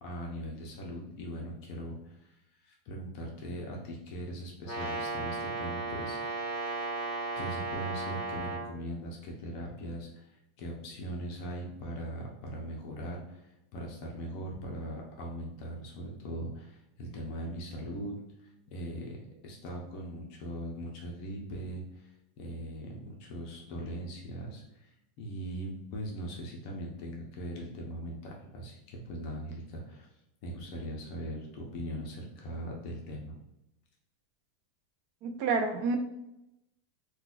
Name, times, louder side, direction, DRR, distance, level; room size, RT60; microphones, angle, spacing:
voice 1, 0.0-2.1 2.6-6.2 7.4-10.3 10.6-13.4 13.7-18.1 18.4-22.1 22.4-24.9 25.2-30.1 30.4-33.4, equal, 40° left, 0 dB, 0.6 m, -40 dB
Brass instrument, 4.6-8.7, right 3 dB, 15° right, 1.2 m, -35 dB
voice 2, 35.2-36.0, right 4 dB, 40° right, 6 dB, 0.4 m, -29 dB
3.9 x 2.2 x 2.4 m, 0.89 s
supercardioid pair, 180°, 0 cm